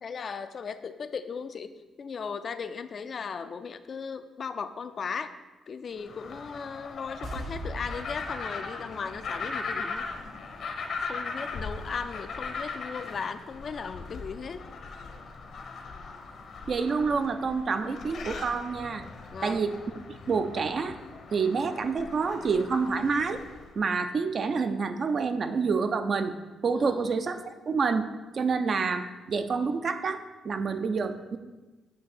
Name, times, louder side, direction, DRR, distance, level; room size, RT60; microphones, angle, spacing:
voice 1, 0.0-1.7 2.0-5.3 5.7-10.1 11.0-14.7 19.3-19.7 26.7-27.1, left 5 dB, 45° left, 10 dB, 0.4 m, -37 dB
sound 1, 6.0-23.7, left 4 dB, 65° left, 0.8 m, -39 dB
sound 2, 7.2-10.4 10.7-10.8, right 1 dB, 65° right, 1.3 m, -41 dB
voice 2, 16.7-19.1 19.4-19.8 20.1-21.0 21.3-23.4 23.8-26.4 26.6-28.1 28.3-31.4, right 5 dB, 45° right, 9 dB, 0.5 m, -28 dB
8.2 x 2.7 x 6.0 m, 1.2 s
cardioid pair, 100°, 0 cm